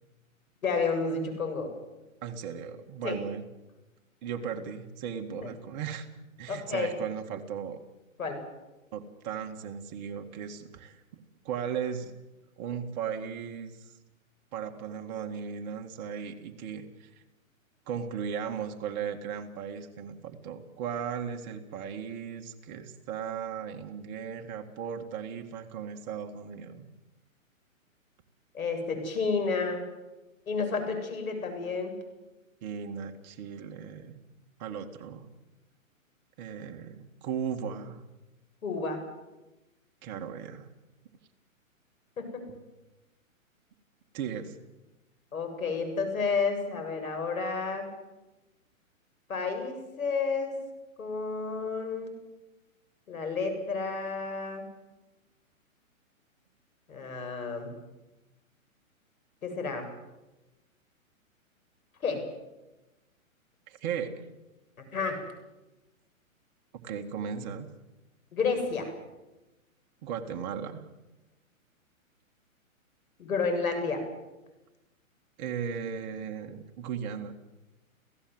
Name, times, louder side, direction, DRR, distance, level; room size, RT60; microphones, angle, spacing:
voice 1, 0.6-1.7 3.0-3.2 6.5-7.0 8.2-8.4 28.5-29.8 30.5-31.9 38.6-39.0 42.2-42.4 45.3-47.9 49.3-50.5 51.0-52.1 53.1-54.6 56.9-57.7 59.4-59.9 62.0-62.2 64.9-65.2 68.3-68.9 73.2-74.0, left 4 dB, 75° left, 5 dB, 7.7 m, -30 dB
voice 2, 2.2-3.4 4.2-6.1 6.4-7.8 8.9-12.1 12.6-14.0 14.5-17.2 17.9-26.9 32.6-34.2 34.6-35.3 36.4-38.0 40.0-40.7 42.5-42.6 44.1-44.6 63.7-64.2 66.7-67.7 70.0-70.8 75.4-77.3, right 7 dB, 30° right, 4 dB, 2.1 m, -36 dB
29.5 x 16.5 x 8.0 m, 1.1 s
hypercardioid pair, 145°, 42 cm